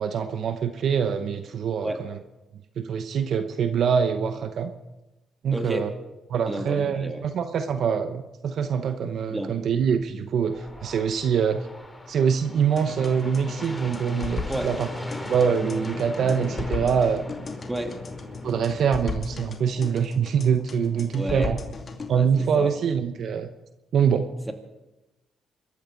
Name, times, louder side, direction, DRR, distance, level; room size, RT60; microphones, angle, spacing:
voice 1, 0.0-2.2 2.8-4.7 5.4-5.9 6.3-11.7 12.1-14.9 15.2-17.2 18.4-21.6 22.1-23.5 23.9-24.3, right 7 dB, 65° right, 9 dB, 0.9 m, -24 dB
voice 2, 5.5-5.9 6.5-7.2 9.3-9.5 14.5-14.7 17.7-18.0 21.1-21.5 22.1-22.7 24.5-24.6, right 1 dB, 10° right, 4 dB, 2.6 m, -31 dB
sound 1, 10.5-19.1, left 1 dB, 10° left, 3.0 m, -40 dB
sound 2, 12.8-22.2, left 4 dB, 40° left, 2.4 m, -36 dB
26.0 x 13.5 x 4.0 m, 1.0 s
cardioid pair, 90°, 0 cm